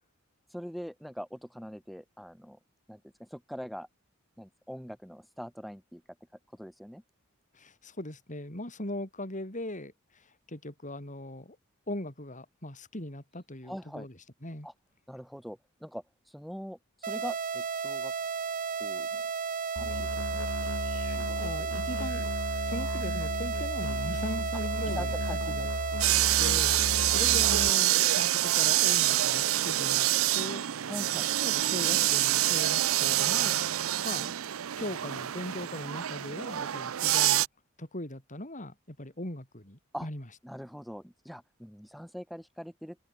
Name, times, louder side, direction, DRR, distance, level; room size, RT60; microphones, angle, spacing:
voice 1, 0.5-2.6 2.9-3.9 4.4-6.0 6.5-7.0 13.6-14.1 14.6-14.7 15.1-18.1 18.8-19.3 19.7-20.4 21.1-21.8 24.8-25.7 30.9-31.3 39.9-40.1 40.4-43.0, equal, ahead, 1.5 m, -43 dB
voice 2, 7.5-11.6 11.9-14.2 14.4-14.7 20.9-22.3 22.6-25.1 25.5-25.7 26.4-30.6 31.1-33.6 34.0-34.3 34.8-37.4 37.8-40.2, left 1 dB, 40° left, 6.4 m, -40 dB
sound 1, 17.0-26.0, right 6 dB, 40° right, 0.8 m, -33 dB
Musical instrument, 19.8-27.7, left 1 dB, 85° left, 1.8 m, -35 dB
sound 2, 26.0-37.5, right 14 dB, 80° right, 0.5 m, -26 dB
open air
head